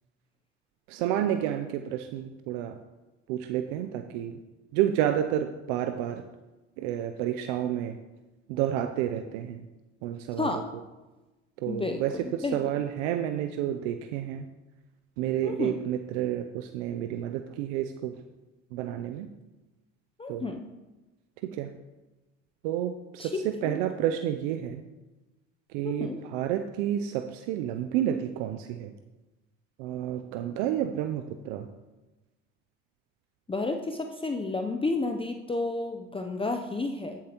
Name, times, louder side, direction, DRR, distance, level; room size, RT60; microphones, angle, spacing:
voice 1, 0.9-2.8 3.3-4.4 4.7-6.2 6.8-8.0 8.5-9.7 10.0-10.6 11.6-14.5 15.2-18.2 18.7-19.3 20.3-20.5 21.4-21.7 22.6-24.8 25.7-28.9 29.8-31.7, right 11 dB, 80° right, 7 dB, 0.6 m, -30 dB
voice 2, 11.7-12.6 15.4-15.8 20.2-20.7 23.2-23.8 25.8-26.2 33.5-37.2, left 3 dB, 15° left, 4 dB, 0.6 m, -31 dB
12.5 x 7.2 x 2.9 m, 1.1 s
supercardioid pair, 75°, 36 cm